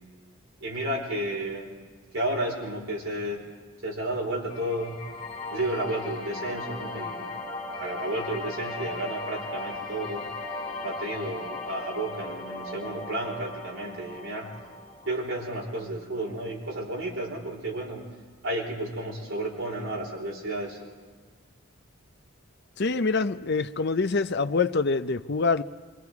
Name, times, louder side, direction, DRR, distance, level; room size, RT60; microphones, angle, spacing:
voice 1, 0.6-1.8 2.1-3.4 3.8-5.0 5.5-7.4 7.7-10.3 10.8-14.5 15.0-18.1 18.4-20.8, right 1 dB, 60° right, 5.0 m, -32 dB
sound 1, 4.5-15.6, left 2 dB, 25° left, 5.3 m, -37 dB
voice 2, 22.8-25.6, left 4 dB, 50° left, 0.6 m, -25 dB
26.5 x 23.5 x 4.8 m
head